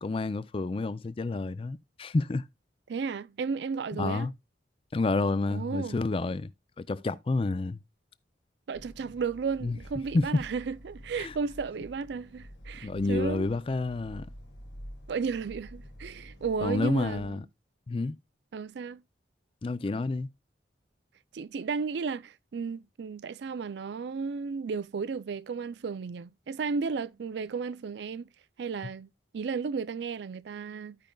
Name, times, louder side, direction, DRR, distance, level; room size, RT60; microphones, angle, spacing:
voice 1, 0.0-2.4 3.9-4.3 4.9-6.5 6.8-7.8 9.6-9.8 10.1-10.3 11.2-11.3 12.8-14.3 16.6-17.4 17.9-18.2 19.6-20.3, left 3 dB, 30° left, 0.4 m, -29 dB
voice 2, 2.9-4.3 5.5-6.0 8.7-13.5 15.1-17.4 18.5-19.0 21.3-28.3 28.6-31.0, right 5 dB, 70° right, 0.4 m, -34 dB
sound 1, 8.7-17.3, equal, 80° left, 1.3 m, -48 dB
14.0 x 5.1 x 2.2 m
head